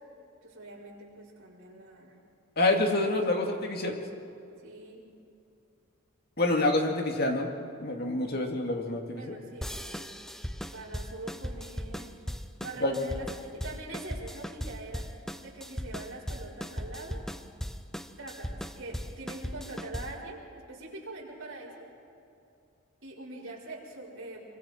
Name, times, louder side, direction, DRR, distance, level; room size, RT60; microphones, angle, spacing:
voice 1, 0.4-2.2 2.8-3.4 4.6-5.0 9.1-10.1 10.7-12.2 12.6-15.1 15.4-17.2 18.2-21.9 23.0-24.4, right 2 dB, 60° right, -5 dB, 5.0 m, -43 dB
voice 2, 2.6-4.0 6.4-7.5 7.8-9.3 12.8-12.9, left 2 dB, 45° left, 2 dB, 2.3 m, -27 dB
sound 1, 9.6-20.3, equal, ahead, 0.6 m, -38 dB
25.5 x 24.0 x 4.5 m, 2.6 s
head